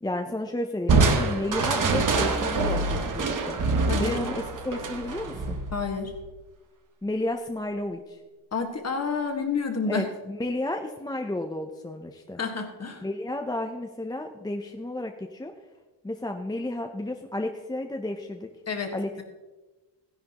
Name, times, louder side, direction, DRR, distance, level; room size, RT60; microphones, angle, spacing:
voice 1, 0.0-3.6 4.0-5.6 7.0-8.2 9.9-12.4 13.0-15.5 16.0-18.5 18.9-19.2, left 1 dB, 10° left, 4 dB, 0.5 m, -32 dB
Crushing, 0.9-6.3, right 3 dB, 40° right, 1.2 m, -25 dB
voice 2, 3.9-4.3 5.7-6.1 8.5-10.1 12.4-13.0 18.7-19.2, left 4 dB, 30° left, 4 dB, 1.5 m, -29 dB
15.5 x 11.0 x 2.9 m, 1.2 s
wide cardioid pair, 145°, 49 cm